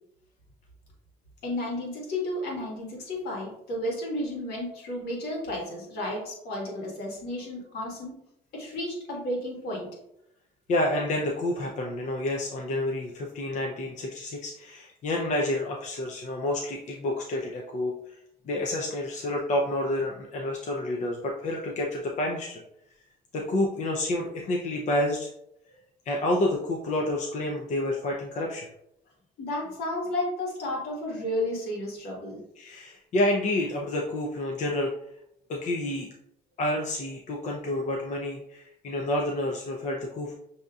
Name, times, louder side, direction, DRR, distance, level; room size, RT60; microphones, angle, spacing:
voice 1, 1.4-8.2 8.5-9.9 29.4-32.4, left 1 dB, 70° left, -2 dB, 1.6 m, -32 dB
voice 2, 10.7-18.0 18.5-22.6 23.3-25.3 26.1-28.7 32.6-34.9 35.5-36.1 36.6-40.3, left 1 dB, 45° left, 0 dB, 0.6 m, -29 dB
6.3 x 2.8 x 2.4 m, 0.78 s
cardioid pair, 110°, 17 cm